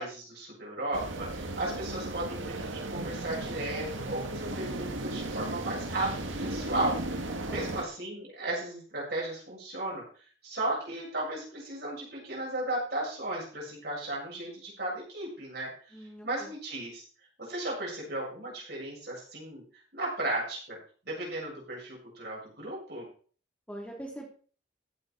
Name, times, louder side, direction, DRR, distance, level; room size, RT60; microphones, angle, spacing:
voice 1, 0.0-10.0 10.4-15.7 16.2-17.0 17.4-19.6 19.9-20.8 21.0-23.1, right 1 dB, 55° right, -4 dB, 7.7 m, -35 dB
sound 1, 0.9-7.8, right 2 dB, 85° right, 1.8 m, -36 dB
voice 2, 15.9-16.5 23.7-24.3, right 1 dB, 5° left, -1 dB, 3.5 m, -42 dB
15.5 x 8.6 x 4.4 m, 0.42 s
head